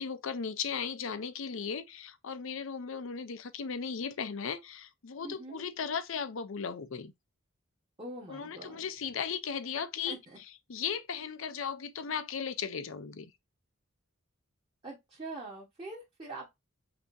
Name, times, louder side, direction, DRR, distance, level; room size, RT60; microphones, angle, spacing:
voice 1, 0.0-7.1 8.3-10.2 10.7-13.3, left 6 dB, 70° left, 0.6 m, -36 dB
voice 2, 5.2-5.6 8.0-8.8 10.1-10.4 14.8-16.5, right 2 dB, 25° right, 1.2 m, -43 dB
5.8 x 2.9 x 2.6 m
head